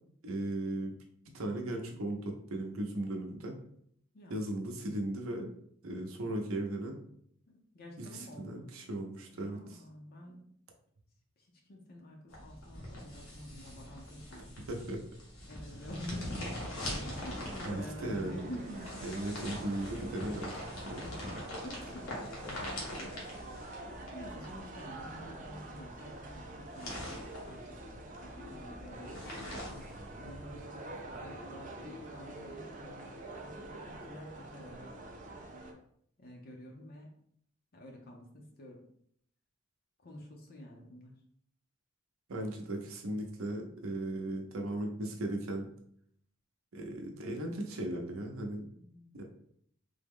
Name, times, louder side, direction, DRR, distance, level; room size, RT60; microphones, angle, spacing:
voice 1, 0.2-0.9 1.3-3.5 4.3-5.5 5.8-7.0 8.0-9.6 14.7-15.0 17.7-18.5 19.0-20.5 20.8-21.0 42.3-45.7 46.7-48.6 49.1-49.2, right 1 dB, 75° right, 2 dB, 0.7 m, -37 dB
voice 2, 7.5-8.7 9.3-10.5 11.4-14.5 15.5-19.1 21.0-23.6 24.1-34.9 36.2-37.1 37.7-38.8 40.0-41.2 43.7-43.8 48.7-49.0, left 1 dB, 45° left, 0 dB, 0.6 m, -49 dB
sound 1, 12.3-30.6, left 1 dB, 85° left, 1.1 m, -43 dB
sound 2, 17.0-35.7, right 2 dB, 40° right, 0.5 m, -47 dB
3.5 x 2.0 x 3.5 m, 0.68 s
head